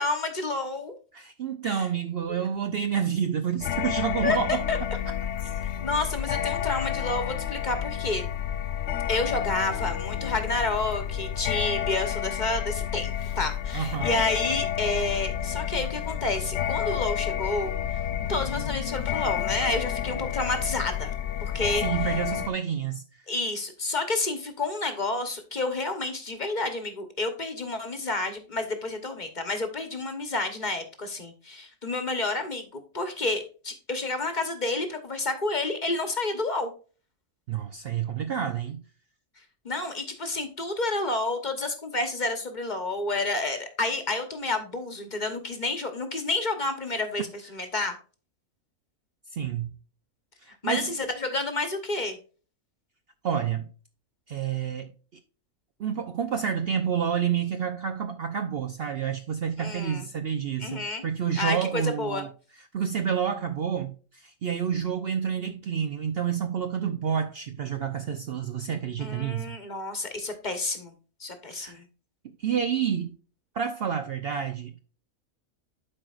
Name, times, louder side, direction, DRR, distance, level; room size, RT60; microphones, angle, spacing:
voice 1, 0.0-1.0 1.6-1.9 2.3-2.4 4.2-4.4 4.7-4.8 5.6-8.3 9.1-18.0 18.3-21.1 21.4-21.8 23.3-36.7 39.6-47.9 50.6-52.2 59.6-60.1 60.6-61.0 61.4-62.3 69.0-70.9 71.2-71.8, left 2 dB, 35° left, 1.1 m, -30 dB
voice 2, 1.1-4.6 13.7-14.2 21.8-23.2 37.5-38.8 49.3-49.7 50.4-50.9 53.2-53.7 54.3-54.8 55.8-62.3 62.7-69.6 71.5-71.8 72.4-73.1 73.5-74.8, right 8 dB, 60° right, 0.7 m, -29 dB
sound 1, 3.6-22.5, left 10 dB, 65° left, 0.7 m, -30 dB
12.0 x 4.5 x 2.4 m
omnidirectional pair, 1.5 m